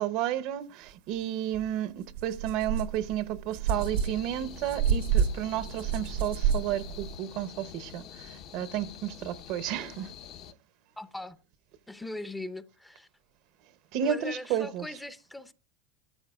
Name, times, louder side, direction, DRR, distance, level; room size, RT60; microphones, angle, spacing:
voice 1, 0.0-10.1 13.9-14.9, right 10 dB, 60° right, 0.8 m, -32 dB
sound 1, 1.5-1.6 2.1-7.1, right 7 dB, 85° right, 1.5 m, -30 dB
sound 2, 3.7-10.5, left 9 dB, 50° left, 0.8 m, -46 dB
voice 2, 11.0-11.4 11.9-13.1 14.0-15.5, left 1 dB, 5° left, 0.6 m, -40 dB
26.5 x 13.5 x 2.3 m
supercardioid pair, 130°, 0 cm